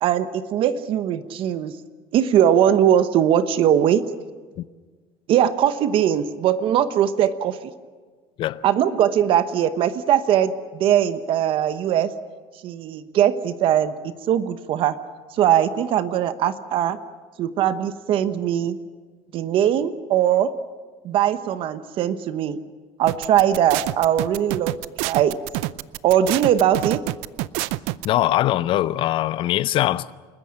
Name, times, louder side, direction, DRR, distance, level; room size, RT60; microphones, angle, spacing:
voice 1, 0.0-1.7 2.1-4.1 5.3-7.7 8.6-12.1 12.6-15.0 15.3-17.0 17.4-18.8 19.3-20.6 21.0-22.6 23.0-24.8 25.0-25.4 26.0-27.0, right 10 dB, 55° right, 1.0 m, -20 dB
sound 1, 23.1-28.1, right 19 dB, 85° right, 0.6 m, -27 dB
voice 2, 28.0-30.1, left 13 dB, 55° left, 0.6 m, -22 dB
29.0 x 14.0 x 8.7 m
cardioid pair, 135°, 11 cm